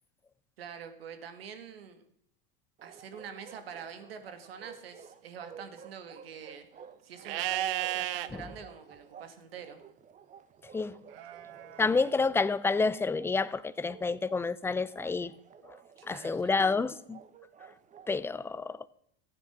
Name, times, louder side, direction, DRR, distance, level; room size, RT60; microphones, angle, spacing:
voice 1, 0.6-2.0 2.8-6.7 7.0-9.8 16.0-16.5, right 7 dB, 90° right, 2.0 m, -45 dB
Bark, 2.8-18.1, right 7 dB, 25° right, 0.9 m, -53 dB
Livestock farm animals working animals, 7.2-8.3 11.1-12.1, right 14 dB, 75° right, 0.9 m, -34 dB
voice 2, 11.8-15.3 15.6-15.8 16.1-17.2 18.1-18.9, left 4 dB, 10° left, 0.5 m, -29 dB
14.5 x 9.0 x 6.0 m
hypercardioid pair, 105°, 29 cm